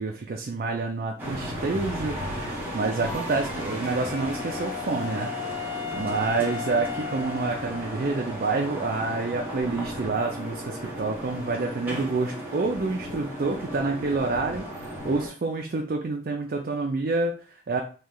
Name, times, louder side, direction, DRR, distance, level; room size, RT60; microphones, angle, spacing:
voice 1, 0.0-5.7 5.9-17.8, right 3 dB, 45° right, 1 dB, 0.4 m, -28 dB
sound 1, 1.2-15.3, equal, 10° right, 0.9 m, -35 dB
Wind instrument woodwind instrument, 3.6-8.3, left 9 dB, 80° left, 1.2 m, -36 dB
3.2 x 2.7 x 3.7 m, 0.38 s
head